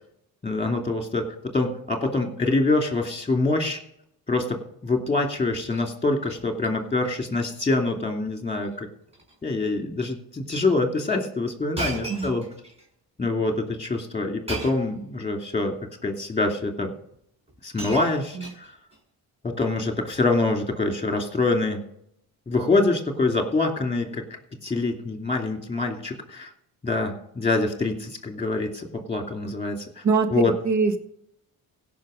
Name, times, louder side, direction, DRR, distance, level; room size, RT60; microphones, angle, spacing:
voice 1, 0.4-1.3 1.5-3.8 4.3-8.9 9.4-12.4 13.2-15.7 16.0-16.9 17.6-18.7 19.4-21.8 22.5-24.2 24.6-26.5 26.8-30.0 30.3-30.5, left 3 dB, 15° left, 3 dB, 2.6 m, -25 dB
Shatter, 5.4-5.9 6.2-6.7 7.0-7.3 7.6-7.7 8.5-8.8 9.1-9.4 10.1-10.2 11.8-12.9 14.5-15.0 16.0-16.1 17.1-17.2 17.5-19.0 19.9-20.2, right 2 dB, 15° right, 4.8 m, -37 dB
voice 2, 12.1-12.4 18.3-18.5 30.0-30.3 30.6-31.0, right 4 dB, 45° right, 7 dB, 1.7 m, -23 dB
16.5 x 5.9 x 5.1 m, 0.71 s
cardioid pair, 85°, 39 cm